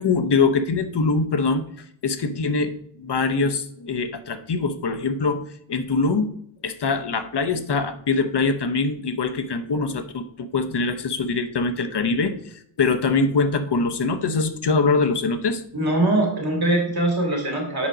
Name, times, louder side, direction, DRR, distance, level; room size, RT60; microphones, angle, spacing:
voice 1, 0.0-1.6 2.0-2.7 3.0-5.4 5.7-6.3 6.6-15.6, left 4 dB, 55° left, 8 dB, 0.8 m, -23 dB
voice 2, 15.7-17.9, right 2 dB, 45° right, 0 dB, 2.9 m, -22 dB
7.1 x 5.1 x 5.0 m, 0.68 s
wide cardioid pair, 135°, 50 cm